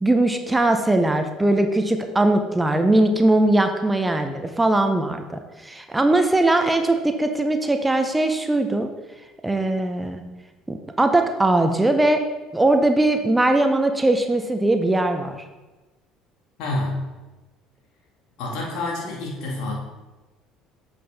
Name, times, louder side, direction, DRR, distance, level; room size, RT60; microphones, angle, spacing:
voice 1, 0.0-8.9 9.4-10.2 10.7-12.2 12.5-15.4, right 2 dB, 15° right, 6 dB, 0.7 m, -20 dB
voice 2, 16.6-17.0 18.4-19.7, left 2 dB, 65° left, -2 dB, 2.0 m, -28 dB
7.6 x 5.9 x 3.4 m, 1.1 s
hypercardioid pair, 60°, 0 cm